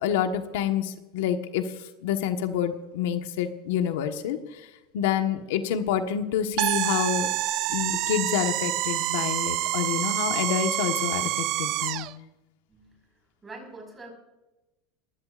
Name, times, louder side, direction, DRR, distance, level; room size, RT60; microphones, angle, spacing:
voice 1, 0.0-7.3 7.7-12.1, left 9 dB, 75° left, 6 dB, 1.4 m, -28 dB
sound 1, 6.6-12.1, right 16 dB, 45° right, 0.5 m, -27 dB
voice 2, 12.7-13.0 13.4-14.1, right 2 dB, 15° right, 1 dB, 5.4 m, -44 dB
23.5 x 16.5 x 2.6 m, 1.0 s
supercardioid pair, 160°, 0 cm